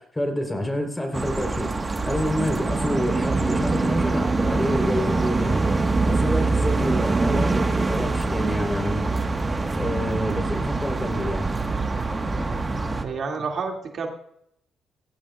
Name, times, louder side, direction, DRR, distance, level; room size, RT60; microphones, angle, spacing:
voice 1, 0.0-9.2 9.7-11.5, left 1 dB, 15° left, 4 dB, 3.8 m, -28 dB
sound 1, 1.1-13.0, right 3 dB, 25° right, 1.4 m, -24 dB
sound 2, 1.8-9.7, left 2 dB, 30° left, 2.9 m, -44 dB
voice 2, 13.0-14.1, right 5 dB, 55° right, 2 dB, 2.4 m, -29 dB
20.0 x 16.0 x 2.4 m, 0.73 s
cardioid pair, 90°, 0 cm